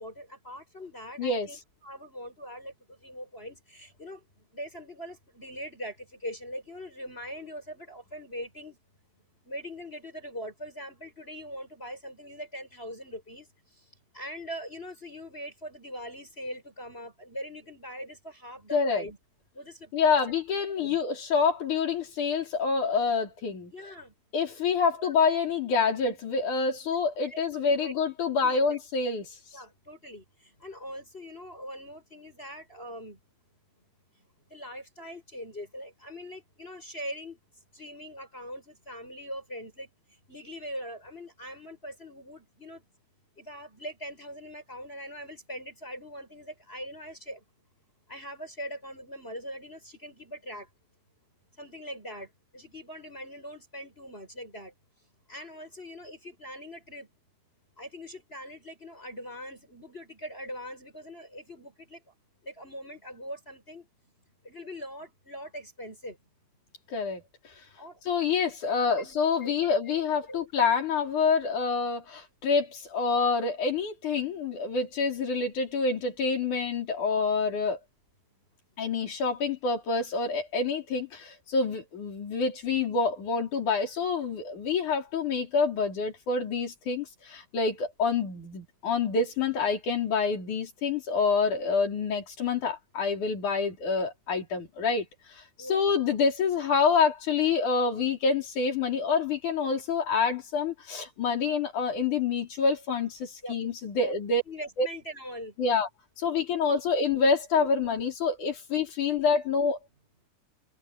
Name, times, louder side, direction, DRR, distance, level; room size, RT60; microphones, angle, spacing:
voice 1, 0.0-4.2 4.5-8.8 9.4-13.5 14.1-19.2 19.5-20.4 20.8-21.0 23.7-24.1 24.9-25.1 26.8-27.0 27.2-27.9 28.2-28.8 29.5-33.2 34.5-37.4 37.7-39.9 40.3-42.8 43.4-47.4 48.1-50.7 51.6-52.3 52.5-54.7 55.3-57.1 57.8-62.0 62.4-63.9 64.4-66.2 67.8-68.0 69.0-70.7 95.6-95.8 103.4-103.6 104.0-104.1 104.5-105.5, equal, 15° left, 6.6 m, -42 dB
voice 2, 1.2-1.6 18.7-19.1 19.9-23.7 24.3-29.4 66.9-67.2 68.0-77.8 78.8-104.4 104.8-104.9 105.6-105.9 106.2-109.8, left 5 dB, 55° left, 5.4 m, -27 dB
omnidirectional pair, 4.1 m